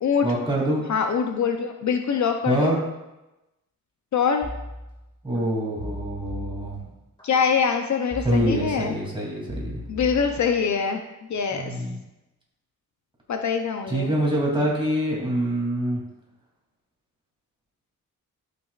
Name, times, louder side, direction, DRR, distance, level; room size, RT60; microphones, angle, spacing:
voice 1, 0.2-0.8 2.5-2.8 5.2-6.8 8.2-9.8 11.5-12.0 13.9-16.0, right 1 dB, 15° right, -4 dB, 2.7 m, -25 dB
voice 2, 0.9-2.8 4.1-4.5 7.2-8.9 9.9-11.0 11.3-11.8 13.3-14.1, left 6 dB, 55° left, 5 dB, 0.6 m, -24 dB
sound 1, 4.4-5.4 5.8-7.2 8.1-9.1 9.5-10.9 11.3-11.7, left 1 dB, 10° left, 1.9 m, -38 dB
12.5 x 6.0 x 2.4 m, 0.98 s
wide cardioid pair, 125°, 35 cm